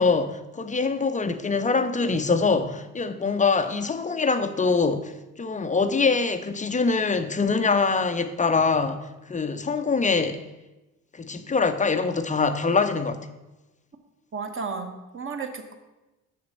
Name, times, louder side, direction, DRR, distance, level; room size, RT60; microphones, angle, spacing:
voice 1, 0.0-5.1 5.4-10.4 11.1-13.2, left 4 dB, 20° left, 0.6 m, -24 dB
voice 2, 14.3-15.7, right 5 dB, 30° right, 1.3 m, -33 dB
6.8 x 6.7 x 5.3 m
hypercardioid pair, 55°, 41 cm